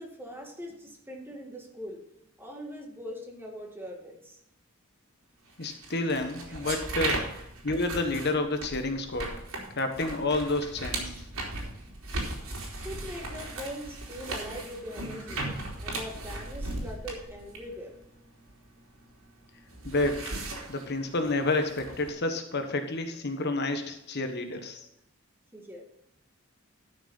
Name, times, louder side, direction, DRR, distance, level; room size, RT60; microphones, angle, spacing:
voice 1, 0.0-2.0 2.4-4.4 6.5-6.7 12.8-15.5 15.8-18.0 25.5-25.8, equal, 10° right, 2 dB, 1.9 m, -41 dB
voice 2, 5.6-7.1 7.6-9.3 9.8-11.0 19.8-20.2 20.7-24.8, left 2 dB, 50° left, 6 dB, 1.2 m, -29 dB
sound 1, 5.6-19.1 19.4-22.1, right 2 dB, 70° right, 3.4 m, -37 dB
13.0 x 6.0 x 5.4 m, 0.82 s
head